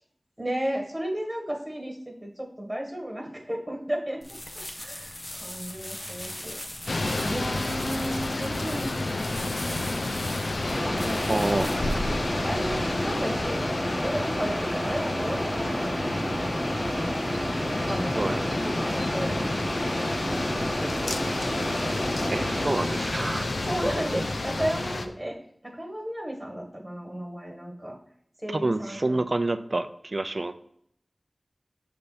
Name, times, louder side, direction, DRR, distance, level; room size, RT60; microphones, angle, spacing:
voice 1, 0.4-5.1 5.4-6.6 7.2-9.9 10.8-11.3 12.4-17.3 17.9-21.1 23.6-25.4 25.6-28.0 28.4-29.2, right 1 dB, 10° right, 0 dB, 1.6 m, -34 dB
sound 1, 4.2-12.7, left 1 dB, 35° left, 0.7 m, -40 dB
sound 2, 6.9-25.1, left 2 dB, 80° left, 0.5 m, -30 dB
sound 3, 10.6-22.7, equal, 15° left, 1.8 m, -31 dB
voice 2, 11.3-11.7 18.2-18.3 22.3-23.5 28.6-30.5, right 2 dB, 55° right, 11 dB, 0.4 m, -27 dB
6.7 x 3.4 x 4.1 m, 0.70 s
wide cardioid pair, 40°, 0 cm